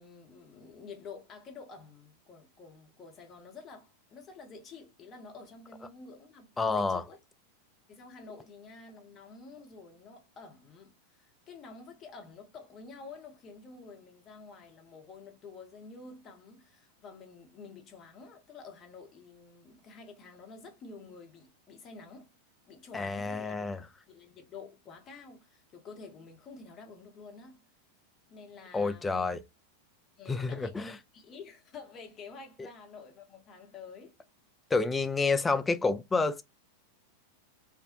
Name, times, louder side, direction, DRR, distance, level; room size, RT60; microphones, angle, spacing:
voice 1, 0.0-7.2 7.9-22.3 22.7-23.7 24.1-27.6 28.3-29.3 30.2-34.2, left 4 dB, 30° left, 0.8 m, -49 dB
voice 2, 6.6-7.0 22.9-23.8 28.7-29.4 30.3-31.0 34.7-36.4, left 3 dB, 10° left, 0.3 m, -29 dB
2.5 x 2.0 x 2.7 m
figure-of-eight pair, 90°, 0 cm